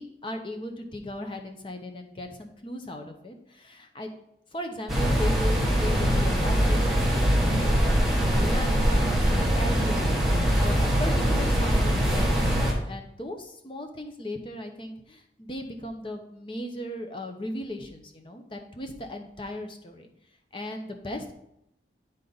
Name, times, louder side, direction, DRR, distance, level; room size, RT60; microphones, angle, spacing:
voice 1, 0.0-4.1 4.5-10.2 10.6-20.1 20.5-21.3, left 1 dB, 30° left, 5 dB, 0.8 m, -37 dB
sound 1, 4.9-12.7, equal, ahead, 1.2 m, -23 dB
10.0 x 4.1 x 4.0 m, 0.78 s
head